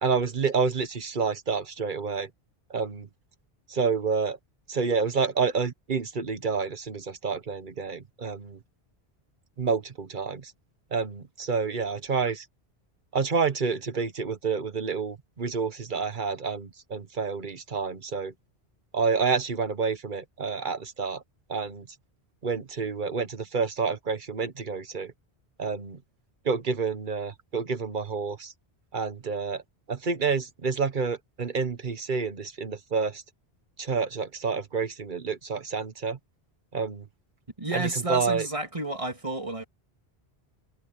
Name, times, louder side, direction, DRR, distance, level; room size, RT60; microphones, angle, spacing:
voice 1, 0.0-2.3 2.7-3.1 3.7-4.4 4.7-8.6 9.6-10.5 10.9-12.4 13.1-18.3 18.9-21.2 21.5-21.9 22.4-25.1 25.6-26.0 26.4-28.5 28.9-29.6 29.9-33.2 33.8-36.2 36.7-37.0 37.7-38.5, right 5 dB, 50° right, 1.3 m, -29 dB
voice 2, 37.6-39.6, right 2 dB, 30° right, 2.4 m, -31 dB
omnidirectional pair, 1.1 m